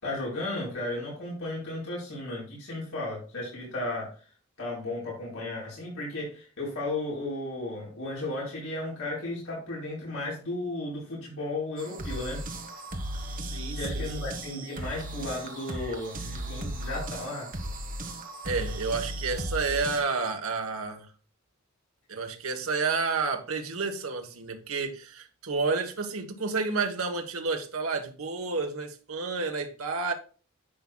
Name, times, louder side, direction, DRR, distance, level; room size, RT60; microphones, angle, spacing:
voice 1, 0.0-4.3 4.6-12.4 13.7-17.5, left 2 dB, 75° left, 4.5 m, -34 dB
sound 1, 11.8-20.0, right 1 dB, 40° right, 1.3 m, -36 dB
voice 2, 13.4-14.3 18.4-21.1 22.1-30.1, right 4 dB, 75° right, 1.2 m, -30 dB
10.0 x 7.2 x 2.3 m
head